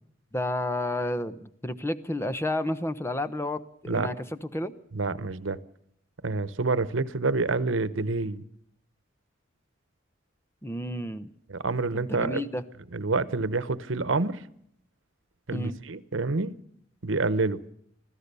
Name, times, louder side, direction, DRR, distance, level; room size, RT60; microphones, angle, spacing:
voice 1, 0.3-4.7 10.6-11.3 11.9-12.6 15.5-15.8, left 1 dB, 15° left, 0.9 m, -31 dB
voice 2, 3.9-4.2 4.9-5.6 6.2-8.4 11.5-12.4 12.9-14.4 15.5-16.5 17.0-17.6, right 3 dB, 90° right, 1.0 m, -27 dB
25.5 x 16.0 x 6.9 m
head